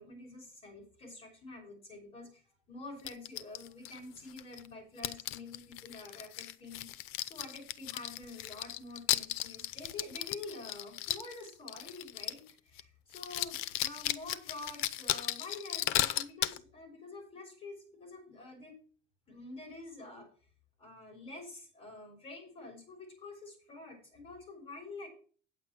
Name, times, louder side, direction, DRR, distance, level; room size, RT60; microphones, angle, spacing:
voice 1, 0.0-6.9 7.3-18.8 19.3-20.3 20.8-25.1, left 2 dB, 30° left, 2 dB, 5.7 m, -48 dB
sound 1, 3.1-4.7 5.0-12.5 12.8-12.9 13.1-16.6, left 14 dB, 80° left, 0.7 m, -36 dB
9.4 x 7.5 x 6.0 m, 0.41 s
cardioid pair, 135°, 21 cm